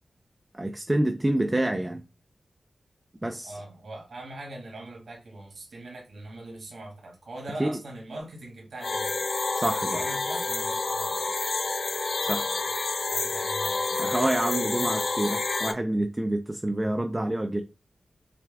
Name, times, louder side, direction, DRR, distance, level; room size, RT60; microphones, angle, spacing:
voice 1, 0.5-2.0 3.2-3.6 7.6-7.8 9.5-10.0 12.2-12.5 14.0-17.6, right 1 dB, 15° right, 0.4 m, -27 dB
voice 2, 3.4-9.2 9.9-11.3 12.2-12.7 13.1-14.1, right 1 dB, 75° right, 1.8 m, -42 dB
sound 1, 8.8-15.7, left 3 dB, 55° left, 0.5 m, -28 dB
5.8 x 2.3 x 3.4 m
wide cardioid pair, 115°, 0 cm